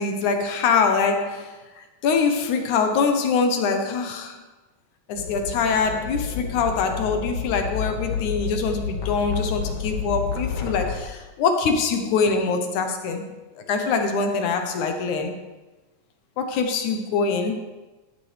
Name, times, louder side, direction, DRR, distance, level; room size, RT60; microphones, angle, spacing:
voice 1, 0.0-4.4 5.1-13.2 13.6-15.4 16.4-17.5, left 5 dB, 75° left, 5 dB, 2.3 m, -24 dB
sound 1, 5.1-11.0, left 6 dB, 50° left, 1.7 m, -30 dB
12.5 x 10.0 x 3.3 m, 1.2 s
omnidirectional pair, 3.7 m